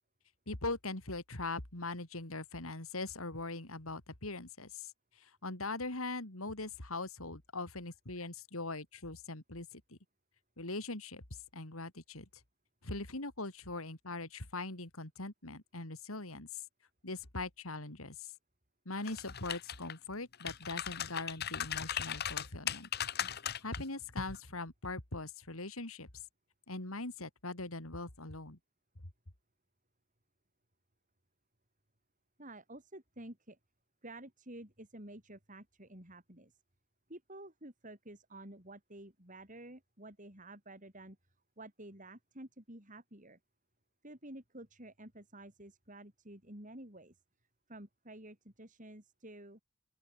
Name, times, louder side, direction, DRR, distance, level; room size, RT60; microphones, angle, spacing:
voice 1, 0.5-4.9 5.2-10.0 10.6-11.2 11.5-12.3 12.8-16.6 17.0-18.3 18.9-22.9 23.6-26.1 26.7-28.6, left 2 dB, 75° left, 3.6 m, -41 dB
sound 1, 19.0-19.9 20.3-23.8 24.2-24.4, left 9 dB, 45° left, 1.2 m, -38 dB
voice 2, 32.4-33.6 34.0-36.6 37.1-41.2 41.6-43.4 44.0-47.2 47.7-49.6, right 1 dB, 35° right, 5.8 m, -51 dB
open air
head